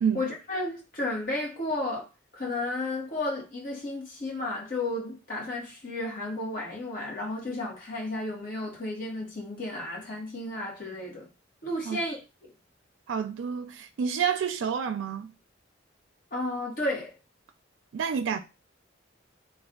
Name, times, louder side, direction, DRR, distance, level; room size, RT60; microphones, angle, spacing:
voice 1, 0.1-2.1 2.3-11.3 11.6-12.5 16.3-17.2, left 2 dB, 50° left, 1.3 m, -33 dB
voice 2, 13.1-15.3 17.9-18.4, right 7 dB, 85° right, 0.4 m, -29 dB
3.3 x 2.3 x 3.6 m
head